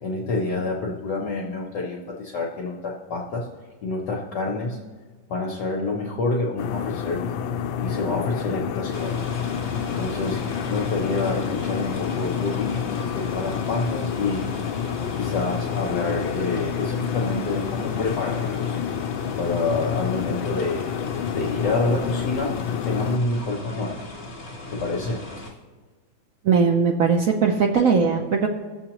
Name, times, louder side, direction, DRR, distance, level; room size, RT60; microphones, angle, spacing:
voice 1, 0.0-3.5 3.8-4.8 5.3-7.2 7.8-9.1 9.5-10.4 10.7-14.5 15.1-18.8 19.4-20.9 21.3-22.6 22.8-24.0 24.7-25.5, left 3 dB, 65° left, -1 dB, 1.4 m, -28 dB
sound 1, 6.6-23.2, left 8 dB, 80° left, 1.3 m, -28 dB
sound 2, 8.9-25.5, left 2 dB, 35° left, 1.4 m, -38 dB
voice 2, 26.4-28.5, right 5 dB, 70° right, 2 dB, 0.8 m, -19 dB
18.0 x 7.2 x 2.9 m, 1.4 s
omnidirectional pair, 2.1 m